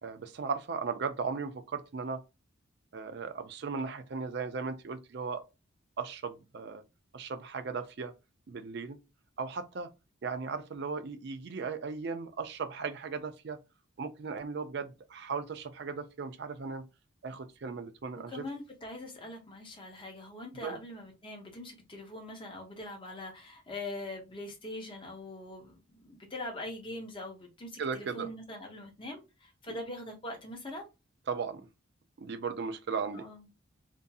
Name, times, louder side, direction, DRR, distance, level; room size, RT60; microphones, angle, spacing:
voice 1, 0.0-2.2 2.9-5.4 6.0-6.8 7.1-8.1 8.5-9.0 9.4-9.9 10.2-13.6 14.0-16.8 17.2-18.4 20.6-20.8 27.8-28.3 31.3-31.7 32.2-33.3, right 5 dB, 55° right, 0.4 m, -37 dB
voice 2, 18.3-30.9 33.1-33.5, left 1 dB, 25° left, 0.7 m, -42 dB
2.6 x 2.6 x 2.3 m
head